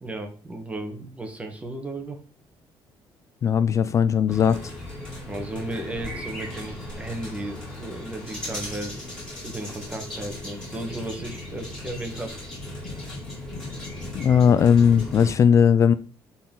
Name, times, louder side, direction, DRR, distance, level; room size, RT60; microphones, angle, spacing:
voice 1, 0.0-2.2 5.3-8.9 9.4-12.4, right 1 dB, 15° right, 1.5 m, -35 dB
voice 2, 3.4-4.6 14.1-15.9, left 7 dB, 35° left, 0.3 m, -18 dB
sound 1, 4.3-15.3, left 1 dB, 5° left, 4.5 m, -37 dB
11.5 x 4.3 x 3.9 m
cardioid pair, 160°, 9 cm